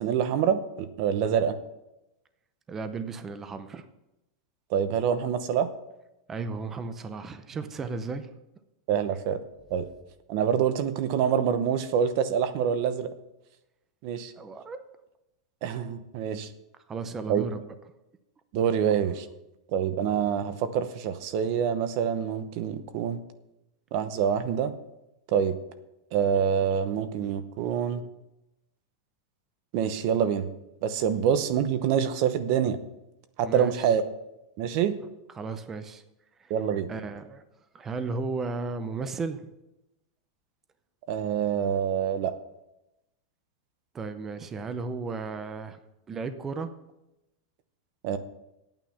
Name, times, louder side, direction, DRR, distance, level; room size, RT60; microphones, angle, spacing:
voice 1, 0.0-1.6 4.7-5.7 8.9-9.4 9.7-9.9 10.3-13.1 14.0-14.3 15.6-16.5 17.3-17.4 18.5-19.3 19.7-23.2 23.9-24.7 25.3-25.6 26.1-28.1 29.7-30.5 30.8-32.8 33.4-34.0 34.6-35.0 36.5-36.9 41.1-42.3 48.0-48.2, right 8 dB, 40° right, 11 dB, 0.9 m, -26 dB
voice 2, 2.7-3.8 6.3-8.3 14.4-14.8 16.9-17.6 33.4-33.9 35.3-36.0 36.4-36.5 36.9-37.4 37.7-39.5 43.9-45.8 46.1-46.7, right 4 dB, 15° right, 10 dB, 0.6 m, -34 dB
11.0 x 9.0 x 5.7 m, 0.91 s
supercardioid pair, 175°, 2 cm